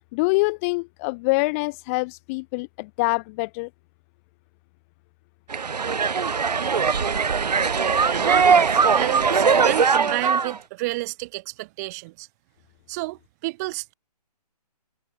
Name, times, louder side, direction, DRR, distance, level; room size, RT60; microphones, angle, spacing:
voice 1, 0.1-3.7, left 27 dB, 20° left, 0.9 m, -25 dB
sound 1, 5.5-10.6, right 5 dB, 75° right, 1.3 m, -20 dB
voice 2, 8.1-12.3 12.9-13.9, right 23 dB, 25° right, 1.7 m, -31 dB
hypercardioid pair, 145°, 21 cm